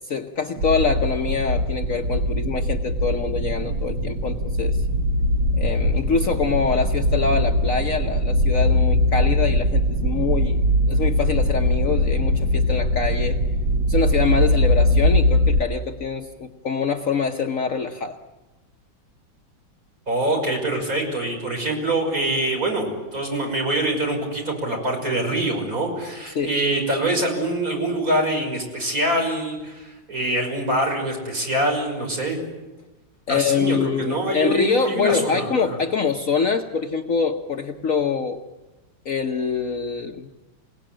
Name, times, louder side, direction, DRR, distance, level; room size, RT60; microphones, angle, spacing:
voice 1, 0.1-4.8 5.6-10.6 10.9-13.4 13.9-18.2 26.3-26.5 33.3-38.4 39.0-40.3, left 5 dB, 50° left, 5 dB, 1.2 m, -24 dB
sound 1, 0.6-15.6, left 1 dB, 85° right, 1.8 m, -21 dB
voice 2, 20.1-32.4 33.3-35.5, right 1 dB, 45° right, 1 dB, 6.3 m, -24 dB
27.5 x 18.0 x 8.9 m, 1.1 s
omnidirectional pair, 2.0 m